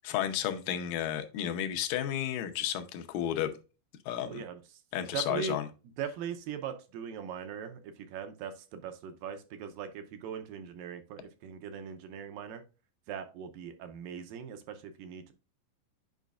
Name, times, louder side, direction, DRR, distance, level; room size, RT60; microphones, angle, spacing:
voice 1, 0.0-3.5 4.1-4.4 4.9-5.7, left 10 dB, 70° left, 6 dB, 2.3 m, -32 dB
voice 2, 4.3-4.6 5.1-5.6 6.0-12.6 13.1-15.3, right 7 dB, 75° right, 8 dB, 2.3 m, -40 dB
9.2 x 5.4 x 2.4 m, 0.32 s
omnidirectional pair, 4.5 m